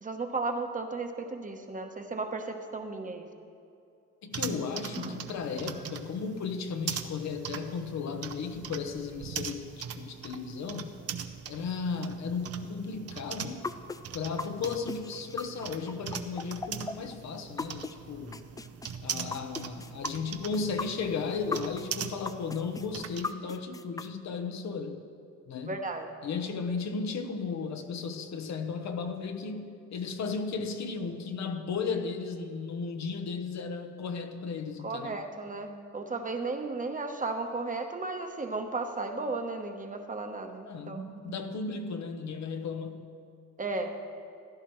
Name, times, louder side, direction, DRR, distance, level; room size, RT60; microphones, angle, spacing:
voice 1, 0.0-3.3 4.9-5.2 5.7-5.8 25.7-26.1 34.8-41.3 43.6-44.0, right 3 dB, 25° right, 4 dB, 1.0 m, -35 dB
voice 2, 4.2-11.0 11.5-13.7 14.1-18.4 19.0-25.0 25.5-25.8 26.2-35.2 40.7-43.1, left 5 dB, 65° left, 6 dB, 1.0 m, -35 dB
sound 1, 4.3-23.3, right 7 dB, 55° right, 0.7 m, -41 dB
sound 2, 13.6-17.9 18.3-21.9 22.2-24.1, left 3 dB, 10° left, 0.3 m, -37 dB
15.0 x 11.5 x 3.2 m, 2.6 s
cardioid pair, 90°, 30 cm